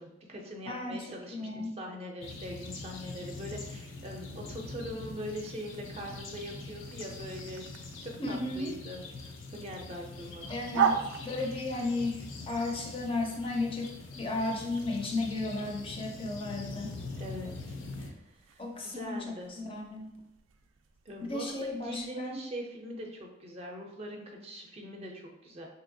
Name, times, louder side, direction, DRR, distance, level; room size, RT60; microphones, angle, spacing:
voice 1, 0.0-7.7 8.0-9.0 9.5-10.5 17.2-19.5 21.1-21.5 21.8-25.7, equal, 30° right, 1 dB, 0.5 m, -42 dB
voice 2, 0.7-1.7 8.2-8.7 10.5-17.0 18.6-20.1 21.2-22.4, left 2 dB, 30° left, 1 dB, 0.4 m, -34 dB
sound 1, 2.2-18.1, left 3 dB, 80° left, 0.5 m, -43 dB
sound 2, 5.3-22.1, right 7 dB, 85° right, 0.3 m, -40 dB
3.3 x 2.8 x 2.6 m, 0.89 s
head